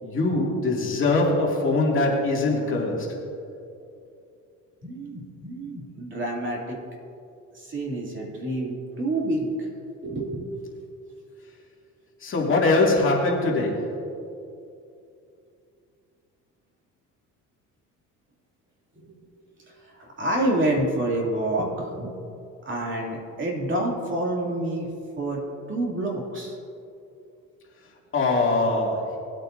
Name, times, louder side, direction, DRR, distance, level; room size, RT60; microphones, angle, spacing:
voice 1, 0.0-3.2 12.2-14.0 28.1-29.2, left 2 dB, 40° left, -3 dB, 2.4 m, -22 dB
voice 2, 4.8-6.8 7.5-9.7 10.0-10.5 18.9-19.1 19.6-22.1 22.7-24.9 25.2-26.6, right 1 dB, 35° right, -2 dB, 2.7 m, -28 dB
20.0 x 8.9 x 2.7 m, 2.6 s
cardioid pair, 115°, 32 cm